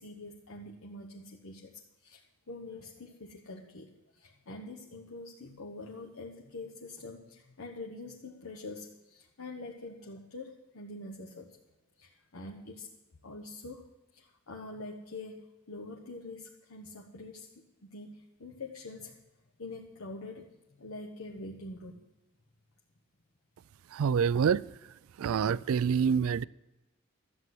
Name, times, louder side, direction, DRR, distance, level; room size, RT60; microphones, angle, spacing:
voice 1, 0.0-1.7 2.0-11.6 12.0-12.9 13.2-13.8 14.1-19.2 19.6-20.5 20.8-22.0, left 2 dB, 85° left, 1.2 m, -45 dB
voice 2, 23.9-24.7 25.2-26.4, right 7 dB, 80° right, 0.3 m, -26 dB
13.5 x 8.1 x 7.7 m
head